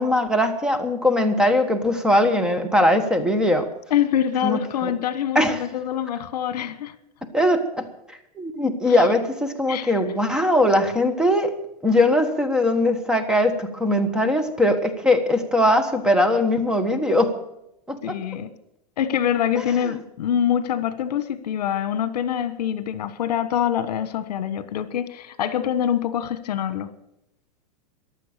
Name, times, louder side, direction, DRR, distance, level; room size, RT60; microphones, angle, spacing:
voice 1, 0.0-3.7 4.4-4.9 5.3-5.6 7.3-11.5 11.8-17.4 17.9-18.2, left 1 dB, 5° right, 1.3 m, -20 dB
voice 2, 3.9-6.9 8.9-9.0 9.7-9.9 18.0-18.5 19.0-26.9, left 9 dB, 75° left, 1.4 m, -25 dB
15.0 x 11.0 x 6.7 m
supercardioid pair, 150°, 21 cm